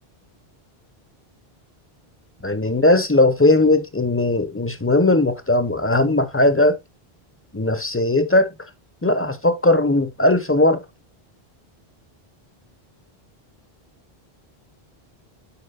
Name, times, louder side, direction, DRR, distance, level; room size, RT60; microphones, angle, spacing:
voice 1, 2.4-6.8 7.5-8.5 9.0-10.8, left 2 dB, 20° left, 0.5 m, -18 dB
9.7 x 4.7 x 2.3 m
omnidirectional pair, 1.0 m